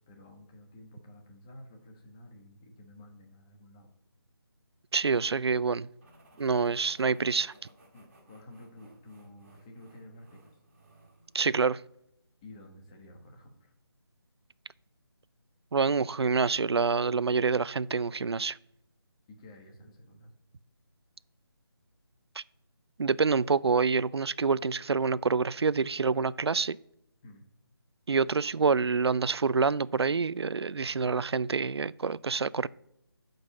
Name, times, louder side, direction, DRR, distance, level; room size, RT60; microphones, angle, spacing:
voice 1, 0.1-3.9 5.2-5.3 7.9-10.6 12.4-13.7 19.3-20.3 27.2-27.4, left 1 dB, 15° left, 1.3 m, -51 dB
voice 2, 4.9-5.9 6.4-7.5 11.3-11.8 15.7-18.6 22.4-22.5 23.0-26.8 28.1-32.7, right 5 dB, 85° right, 0.4 m, -27 dB
sound 1, 6.0-11.8, right 1 dB, 35° right, 3.8 m, -59 dB
9.5 x 5.3 x 7.2 m
figure-of-eight pair, 170°, 13 cm